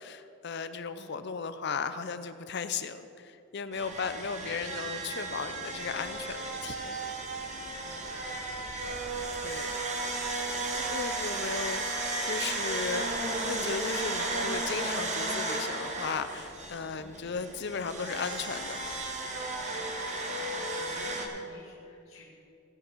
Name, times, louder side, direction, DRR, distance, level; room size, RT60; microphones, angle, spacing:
voice 1, 0.0-6.8 9.4-9.7 10.6-13.0 13.4-18.9, left 5 dB, 55° left, 11 dB, 0.6 m, -36 dB
sound 1, 3.7-21.3, right 2 dB, 35° right, 1.4 m, -34 dB
voice 2, 7.8-8.1 17.0-17.3 20.7-22.2, left 1 dB, 70° left, -3 dB, 2.4 m, -51 dB
17.5 x 6.4 x 6.2 m, 2.6 s
head